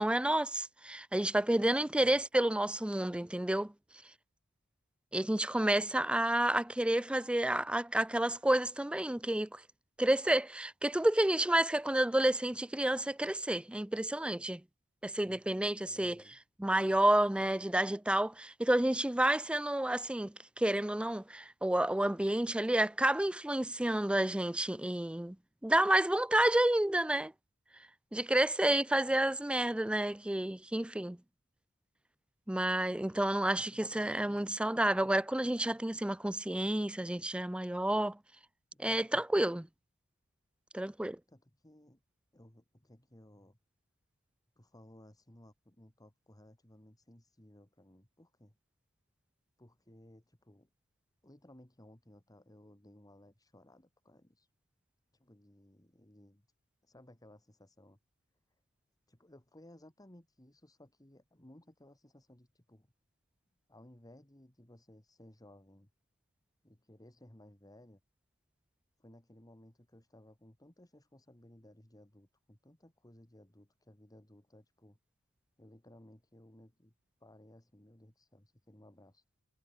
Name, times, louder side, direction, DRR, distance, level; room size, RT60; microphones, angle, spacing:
voice 1, 0.0-3.7 5.1-9.6 10.0-14.6 15.0-16.2 16.6-25.4 25.6-27.3 28.1-31.2 32.5-38.2 38.8-39.7 40.7-41.2, right 1 dB, 5° right, 0.4 m, -30 dB
voice 2, 1.8-2.2 15.2-15.4 15.8-16.4 29.1-29.2 33.6-34.3 38.7-39.0 41.3-42.0 42.3-43.6 44.6-48.6 49.6-50.7 51.2-54.5 55.1-56.5 56.8-58.0 59.1-62.9 63.7-65.9 66.6-68.0 69.0-75.0 75.6-76.9 77.2-79.2, left 1 dB, 15° left, 2.2 m, -59 dB
head